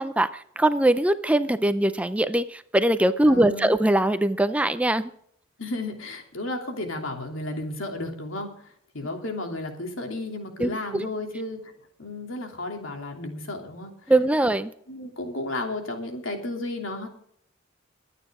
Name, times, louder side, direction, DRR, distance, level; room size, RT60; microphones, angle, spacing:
voice 1, 0.0-5.1 10.6-11.1 14.1-14.7, right 1 dB, 5° right, 11 dB, 0.5 m, -22 dB
voice 2, 3.2-3.8 5.6-11.7 12.0-14.1 14.9-17.1, left 2 dB, 85° left, 3 dB, 3.0 m, -33 dB
22.5 x 9.1 x 3.7 m, 0.66 s
head